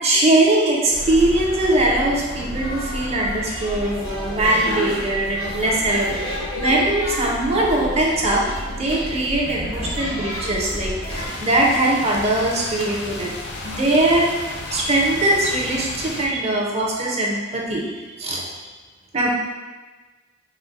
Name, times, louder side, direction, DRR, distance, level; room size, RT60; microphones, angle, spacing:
voice 1, 0.0-8.4 8.8-13.3 13.6-14.3 14.7-18.5 19.1-19.3, right 1 dB, 30° right, -3 dB, 0.6 m, -21 dB
sound 1, 0.9-11.3, equal, 80° left, 0.9 m, -30 dB
sound 2, 11.1-16.3, left 2 dB, 55° left, 0.5 m, -33 dB
4.2 x 2.0 x 3.8 m, 1.3 s
head